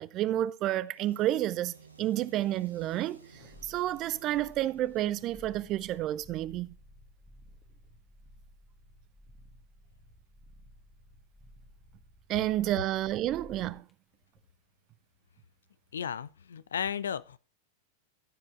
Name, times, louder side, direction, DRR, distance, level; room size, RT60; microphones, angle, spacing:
voice 1, 0.0-3.2 3.6-6.7 12.3-13.8, right 14 dB, 40° right, 0.4 m, -30 dB
sound 1, 0.9-6.3, right 4 dB, 90° right, 1.1 m, -56 dB
sound 2, 3.3-13.9 14.3-14.5, left 1 dB, 20° left, 1.6 m, -55 dB
voice 2, 15.9-17.4, left 8 dB, 70° left, 0.4 m, -34 dB
14.5 x 4.9 x 3.6 m
figure-of-eight pair, 95°, 0 cm